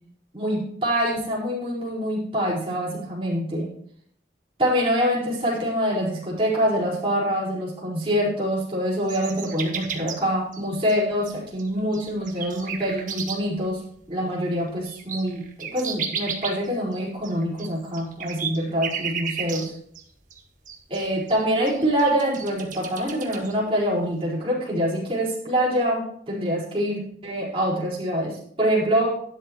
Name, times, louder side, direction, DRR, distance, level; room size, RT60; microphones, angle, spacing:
voice 1, 0.3-3.7 4.6-13.8 14.1-19.7 20.9-29.2, equal, 30° right, -7 dB, 4.6 m, -25 dB
sound 1, 9.1-10.3 10.5-11.3 11.6-13.6 14.9-20.0 20.3-20.4 20.6-21.0 21.3-23.5, right 7 dB, 45° right, 1.6 m, -33 dB
12.0 x 11.0 x 3.1 m, 0.66 s
head